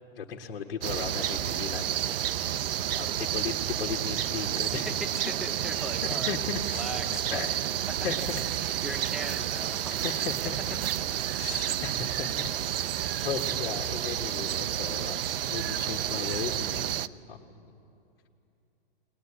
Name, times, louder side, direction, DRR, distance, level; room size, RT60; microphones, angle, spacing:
voice 1, 0.2-2.0 2.9-4.9 6.1-7.0 7.3-7.6 8.0-8.5 10.0-10.8 11.4-17.0 17.3-17.7, left 7 dB, 70° left, 1 dB, 1.7 m, -36 dB
sound 1, 0.8-17.1, right 11 dB, 65° right, 0.6 m, -30 dB
voice 2, 4.7-8.1 8.5-10.3 10.8-12.1 12.6-13.1, right 1 dB, ahead, 4 dB, 0.9 m, -41 dB
21.0 x 19.5 x 9.9 m, 2.7 s
hypercardioid pair, 160°, 30 cm